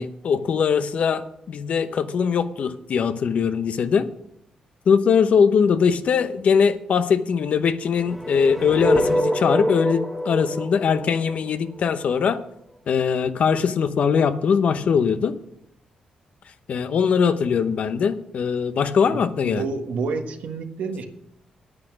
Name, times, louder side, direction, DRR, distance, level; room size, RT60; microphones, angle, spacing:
voice 1, 0.0-4.1 4.9-12.4 12.9-15.3 16.7-19.6, left 6 dB, 65° left, 11 dB, 0.8 m, -21 dB
sound 1, 8.0-12.1, equal, ahead, 1.5 m, -25 dB
voice 2, 19.1-21.0, right 4 dB, 80° right, 5 dB, 1.4 m, -29 dB
9.7 x 8.7 x 6.1 m, 0.74 s
cardioid pair, 75°, 2 cm